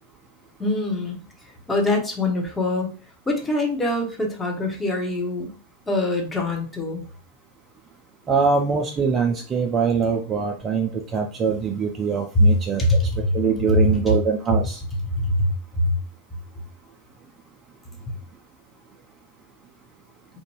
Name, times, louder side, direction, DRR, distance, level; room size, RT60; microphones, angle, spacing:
voice 1, 0.6-1.2 1.7-2.9 3.3-5.5 5.9-7.0 12.3-12.5 12.8-13.4 13.7-14.1 15.1-16.0, left 1 dB, 10° left, 0 dB, 0.7 m, -22 dB
voice 2, 8.3-13.1 13.3-14.8, right 5 dB, 25° right, 2 dB, 0.4 m, -23 dB
2.5 x 2.1 x 3.0 m, 0.38 s
figure-of-eight pair, 90°, 0 cm